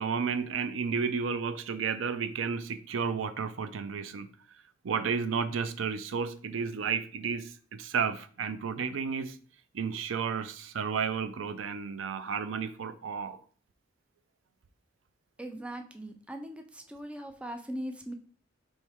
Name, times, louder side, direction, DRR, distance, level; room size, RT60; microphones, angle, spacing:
voice 1, 0.0-4.3 4.8-9.4 9.7-13.4, right 6 dB, 80° right, 0.5 m, -32 dB
voice 2, 15.4-18.1, right 1 dB, 5° right, 0.4 m, -40 dB
4.4 x 3.2 x 3.5 m
head